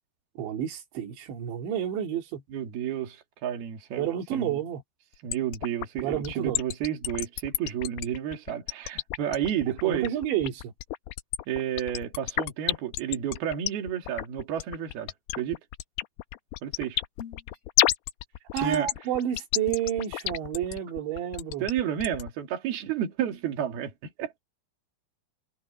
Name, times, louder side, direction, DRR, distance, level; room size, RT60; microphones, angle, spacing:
voice 1, 0.4-2.4 4.0-4.8 6.0-6.6 9.8-10.7 18.5-21.7, right 10 dB, 85° right, 4.7 m, -30 dB
voice 2, 2.5-4.6 5.2-10.1 11.5-15.6 16.6-17.0 18.5-18.9 20.7-20.8 21.6-24.3, right 10 dB, 65° right, 4.4 m, -31 dB
sound 1, 5.3-22.3, left 15 dB, 75° left, 2.5 m, -30 dB
sound 2, 17.2-17.6 19.7-20.0, left 9 dB, 55° left, 3.9 m, -39 dB
omnidirectional pair, 5.0 m